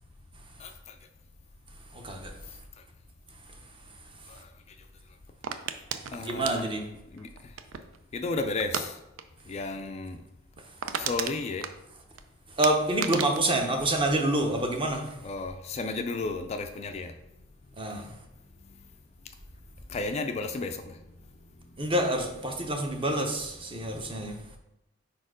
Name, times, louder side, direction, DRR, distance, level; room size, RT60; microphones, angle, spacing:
voice 1, 0.6-0.9 4.3-4.5 6.1-7.3 8.1-9.0 9.5-10.2 11.0-11.7 15.2-17.1 19.9-21.0, left 3 dB, 30° left, 6 dB, 0.3 m, -33 dB
voice 2, 1.9-2.3 6.2-6.8 12.6-15.1 17.8-18.1 21.8-24.4, right 1 dB, 25° right, 4 dB, 0.7 m, -27 dB
sound 1, 5.4-8.0 8.6-8.9 9.2-9.4 9.7-9.8 10.2-10.3 10.5-12.2 12.6-14.7 14.9-15.4, right 8 dB, 85° right, 0.4 m, -35 dB
4.5 x 4.3 x 4.9 m, 0.89 s
head